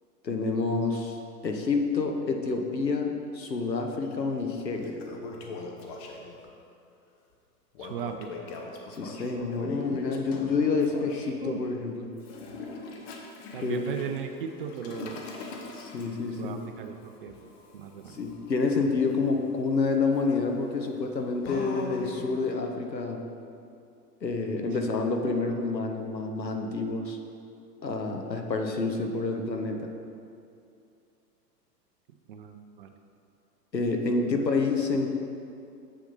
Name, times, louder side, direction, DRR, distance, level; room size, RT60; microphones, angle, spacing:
voice 1, 0.2-5.0 8.9-12.1 13.6-13.8 15.7-16.6 18.1-23.2 24.2-27.2 27.8-29.9 33.7-35.1, left 3 dB, 90° left, 3 dB, 1.0 m, -28 dB
Toilet flush, 4.0-4.1 4.6-6.5 7.7-11.3 12.2-22.5, left 3 dB, 40° left, 1.0 m, -43 dB
voice 2, 7.8-8.3 11.4-11.6 13.5-15.3 16.4-17.3 17.7-18.2 32.3-32.9, right 7 dB, 35° right, 6 dB, 0.4 m, -36 dB
7.3 x 6.8 x 4.1 m, 2.6 s
figure-of-eight pair, 105°, 49 cm